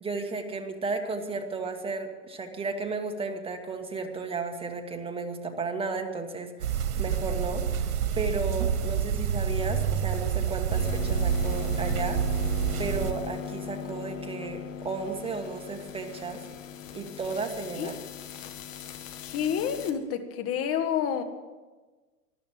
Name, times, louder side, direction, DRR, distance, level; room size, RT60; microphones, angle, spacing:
voice 1, 0.0-7.8 8.1-12.2 12.8-16.4 16.9-17.9, right 4 dB, 10° right, 4 dB, 1.5 m, -34 dB
sound 1, 6.6-13.1, right 7 dB, 70° right, 1.8 m, -28 dB
sound 2, 10.7-19.9, left 9 dB, 55° left, 1.7 m, -39 dB
voice 2, 19.2-21.2, left 8 dB, 30° left, 8 dB, 1.5 m, -29 dB
14.0 x 12.0 x 7.4 m, 1.3 s
hypercardioid pair, 115°, 45 cm